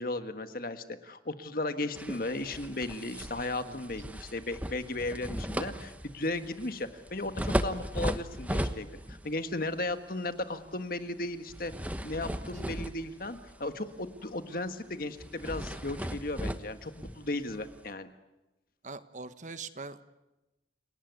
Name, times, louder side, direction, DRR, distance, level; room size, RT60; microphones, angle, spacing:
voice 1, 0.0-11.7 12.0-18.1, left 2 dB, 55° left, 9 dB, 1.6 m, -35 dB
sound 1, 2.0-9.3 9.7-9.9 11.5-13.7 14.1-14.3 14.6-14.7 15.2-17.9, equal, 10° right, 1.1 m, -36 dB
voice 2, 12.2-12.6 18.8-20.0, right 4 dB, 45° right, 11 dB, 1.3 m, -43 dB
29.0 x 18.0 x 9.5 m, 1.0 s
head